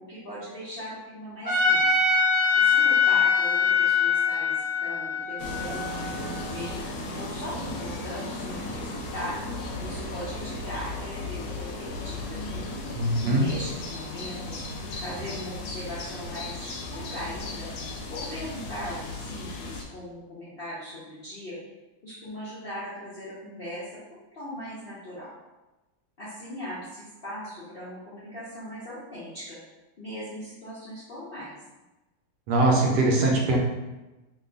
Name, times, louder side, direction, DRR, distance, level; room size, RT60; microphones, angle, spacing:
voice 1, 0.0-2.1 2.6-6.7 7.1-9.4 9.8-12.7 13.2-14.6 15.0-17.7 18.1-21.6 22.0-25.3 26.2-29.6 30.0-31.6, left 1 dB, 60° left, -10 dB, 0.6 m, -39 dB
Trumpet, 1.4-6.6, left 5 dB, 30° right, 0.3 m, -23 dB
sound 1, 5.4-19.8, left 2 dB, 75° left, 1.2 m, -36 dB
voice 2, 13.0-13.5 32.5-33.6, right 2 dB, 70° right, -1 dB, 1.1 m, -22 dB
3.0 x 2.2 x 3.8 m, 1.1 s
omnidirectional pair, 2.0 m